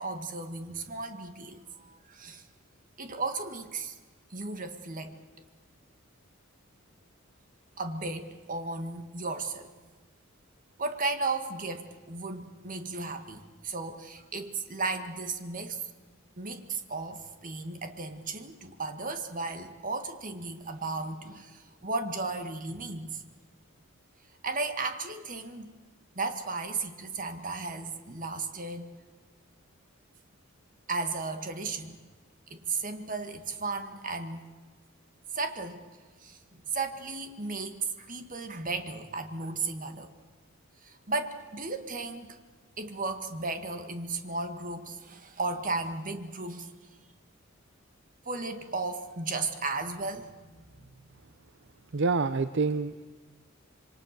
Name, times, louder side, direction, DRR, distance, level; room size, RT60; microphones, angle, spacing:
voice 1, 0.0-2.4 3.0-3.9 4.3-5.2 7.8-9.7 10.8-15.9 16.4-23.2 24.4-25.7 26.2-28.9 30.9-32.0 32.5-34.5 35.3-35.8 36.2-36.4 36.7-40.1 40.8-42.4 42.8-46.7 48.3-50.9, right 3 dB, 40° right, 7 dB, 1.9 m, -35 dB
voice 2, 51.9-53.1, right 4 dB, 60° right, 12 dB, 0.7 m, -27 dB
27.0 x 24.0 x 6.8 m, 1.4 s
head